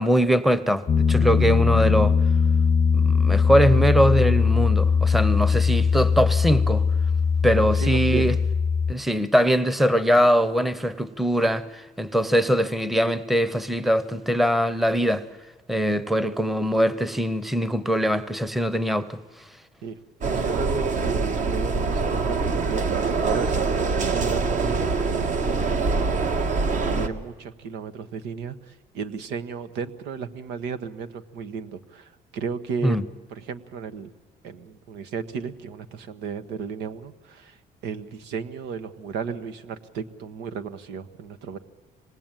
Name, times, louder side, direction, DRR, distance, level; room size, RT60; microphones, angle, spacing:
voice 1, 0.0-2.2 2.9-6.9 7.4-8.4 8.9-15.3 15.7-19.2 32.8-33.0, equal, ahead, 0.9 m, -22 dB
Piano, 0.9-8.9, left 6 dB, 30° left, 0.7 m, -20 dB
voice 2, 7.8-8.3 19.8-26.4 26.7-33.0 33.3-34.1 34.4-37.6 37.8-41.6, right 6 dB, 85° right, 1.4 m, -34 dB
sound 1, 20.2-27.1, right 4 dB, 45° right, 1.6 m, -24 dB
25.5 x 19.5 x 9.1 m
cardioid pair, 110°, 17 cm